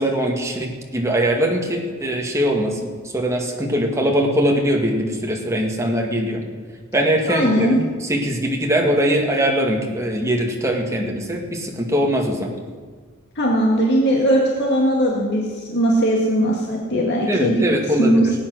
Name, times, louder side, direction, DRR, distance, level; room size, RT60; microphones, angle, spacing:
voice 1, 0.0-2.7 3.1-6.4 6.9-12.5 17.3-18.1, equal, 15° right, 0 dB, 1.9 m, -21 dB
voice 2, 7.3-7.8 13.4-17.6 18.0-18.3, equal, 55° left, -2 dB, 2.0 m, -19 dB
18.5 x 8.7 x 6.3 m, 1.5 s
head